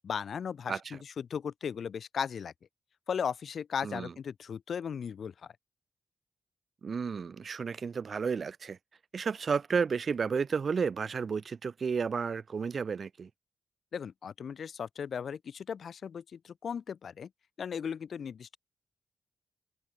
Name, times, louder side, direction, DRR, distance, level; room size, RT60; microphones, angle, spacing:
voice 1, 0.0-2.5 3.1-5.3 13.9-17.3 17.6-18.6, left 7 dB, 65° left, 4.0 m, -36 dB
voice 2, 0.7-1.0 3.8-4.1 6.8-8.8 9.1-13.3, right 5 dB, 50° right, 3.2 m, -32 dB
open air
wide cardioid pair, 130°, 0 cm